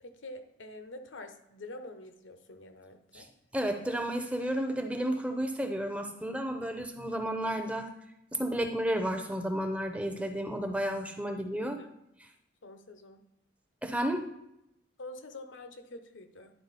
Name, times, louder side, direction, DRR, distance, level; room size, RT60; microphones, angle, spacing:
voice 1, 0.0-3.3 11.6-11.9 12.6-13.2 15.0-16.5, left 2 dB, 75° left, 8 dB, 0.8 m, -46 dB
voice 2, 3.5-7.9 8.3-11.8 13.8-14.3, right 1 dB, 5° right, 5 dB, 0.6 m, -32 dB
10.5 x 4.8 x 4.1 m, 0.82 s
head